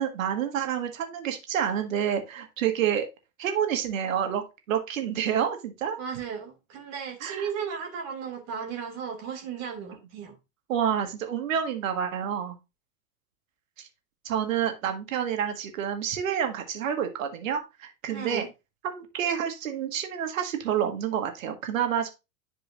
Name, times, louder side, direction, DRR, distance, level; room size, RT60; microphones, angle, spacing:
voice 1, 0.0-3.1 3.4-6.0 7.2-7.4 10.7-12.5 13.8-13.9 14.2-18.5 18.8-22.1, right 9 dB, 55° right, 1.7 m, -28 dB
voice 2, 6.0-10.4 18.1-18.5, right 7 dB, 35° right, 2.1 m, -35 dB
10.5 x 4.9 x 2.5 m
figure-of-eight pair, 100°, 46 cm